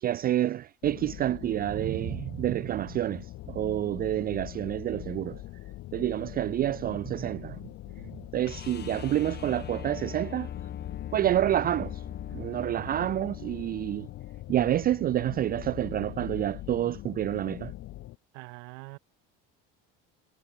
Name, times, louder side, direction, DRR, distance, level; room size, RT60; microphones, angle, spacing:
voice 1, 0.0-5.4 5.9-7.6 8.3-10.5 11.1-11.9 12.3-14.1 14.5-17.7, right 12 dB, 30° right, 0.4 m, -28 dB
sound 1, 0.8-18.2, left 16 dB, 55° left, 3.0 m, -42 dB
sound 2, 8.5-14.4 16.9-17.0, left 9 dB, 35° left, 4.0 m, -42 dB
voice 2, 18.3-19.0, right 40 dB or more, 80° right, 3.2 m, -44 dB
cardioid pair, 130°, 29 cm